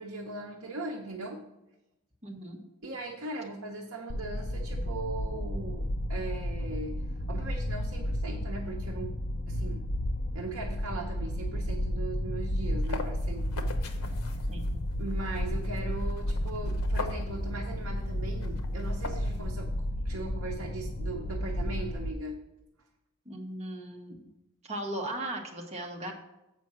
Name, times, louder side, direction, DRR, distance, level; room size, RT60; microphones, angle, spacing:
voice 1, 0.0-1.4 2.8-7.0 7.3-9.1 9.5-9.9 10.3-14.4 15.0-19.7 20.0-22.4, right 3 dB, 65° right, 0 dB, 0.8 m, -39 dB
voice 2, 2.2-2.6 14.5-14.7 23.2-24.3 24.6-26.1, right 1 dB, 30° right, 1 dB, 1.1 m, -37 dB
sound 1, 4.1-22.1, left 1 dB, 40° left, 0.5 m, -32 dB
sound 2, 12.5-19.5, left 3 dB, 90° left, 0.8 m, -43 dB
7.5 x 5.2 x 6.1 m, 0.94 s
head